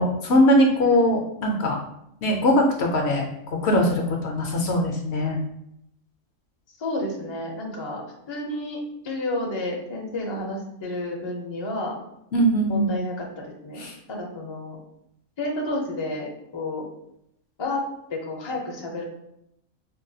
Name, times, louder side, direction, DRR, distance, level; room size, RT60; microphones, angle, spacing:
voice 1, 0.0-1.8 2.2-5.4 12.3-12.8 13.8-13.9, equal, 65° left, 2 dB, 0.8 m, -21 dB
voice 2, 6.8-12.0 12.7-14.8 15.4-16.8 17.6-17.8 18.1-19.0, left 1 dB, 35° left, -1 dB, 0.4 m, -31 dB
4.5 x 2.2 x 2.6 m, 0.78 s
omnidirectional pair, 1.4 m